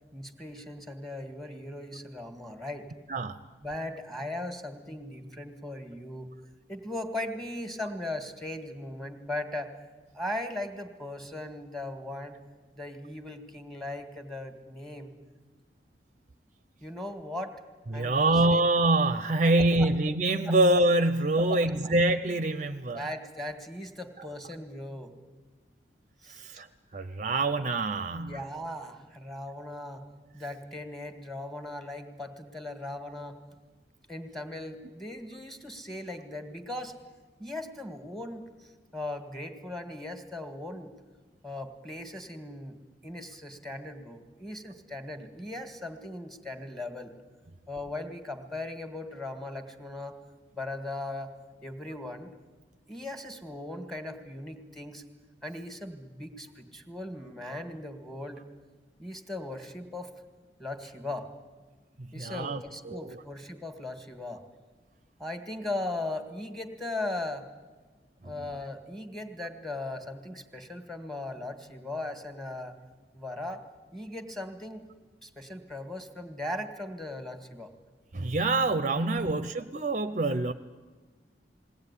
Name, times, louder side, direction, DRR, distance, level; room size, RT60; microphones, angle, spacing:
voice 1, 0.1-2.9 3.6-6.3 6.7-9.7 10.1-12.4 12.8-15.1 16.8-17.6 17.9-18.6 19.4-19.5 19.8-19.9 20.5-20.6 21.4-21.9 22.9-25.2 26.2-26.5 28.1-30.0 30.3-33.4 34.1-36.9 37.4-40.9 41.4-42.7 43.0-47.1 47.7-50.2 50.5-51.3 51.6-52.3 52.9-55.0 55.4-58.4 59.0-60.1 60.6-61.3 62.1-64.5 65.2-67.5 68.2-72.8 73.1-73.6 73.9-74.9 75.2-77.7 78.9-79.4, left 1 dB, ahead, 7 dB, 1.9 m, -38 dB
voice 2, 17.9-23.1 26.4-26.7 26.9-28.4 62.1-63.2 68.2-68.3 78.1-80.5, right 2 dB, 45° right, 10 dB, 0.7 m, -25 dB
21.5 x 17.5 x 9.9 m, 1.3 s
head